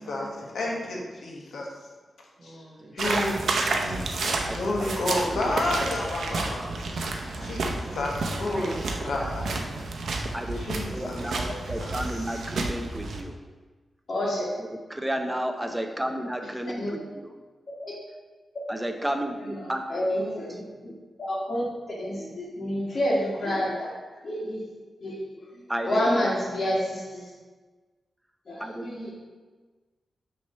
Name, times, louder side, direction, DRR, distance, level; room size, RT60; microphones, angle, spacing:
voice 1, 0.0-1.0 2.4-5.2 6.3-8.0 8.5-9.4 11.6-12.4, right 1 dB, 30° right, -2 dB, 1.2 m, -44 dB
voice 2, 0.5-1.7 2.4-2.6 2.9-6.6 7.4-7.6 7.9-8.7 9.0-9.5 10.5-11.9, left 2 dB, 75° left, -2 dB, 1.3 m, -31 dB
sound 1, 3.0-13.2, right 3 dB, 75° right, 0.7 m, -30 dB
voice 3, 10.9-13.4 14.9-17.3 18.7-19.8 25.7-26.0 28.6-29.1, right 1 dB, 10° right, 5 dB, 0.6 m, -32 dB
voice 4, 14.1-14.4 15.7-15.9 16.8-16.9 17.8-17.9 19.4-20.9 21.2-21.6 22.0-23.9 24.2-24.7 25.0-25.2 25.8-27.3 28.5-29.1, equal, 50° left, -9 dB, 1.5 m, -29 dB
6.3 x 3.3 x 5.4 m, 1.3 s
wide cardioid pair, 115°, 0 cm